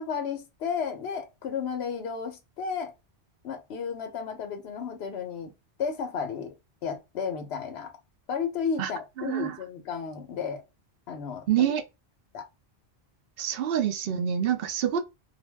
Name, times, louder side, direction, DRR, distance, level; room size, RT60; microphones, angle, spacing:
voice 1, 0.0-2.9 3.4-5.5 5.8-6.5 6.8-7.9 8.3-10.6 11.1-11.7 12.3-12.5, left 6 dB, 75° left, 0.9 m, -33 dB
voice 2, 9.2-9.6 11.5-11.8 13.4-15.0, right 9 dB, 65° right, 0.7 m, -26 dB
2.5 x 2.0 x 3.2 m
omnidirectional pair, 1.1 m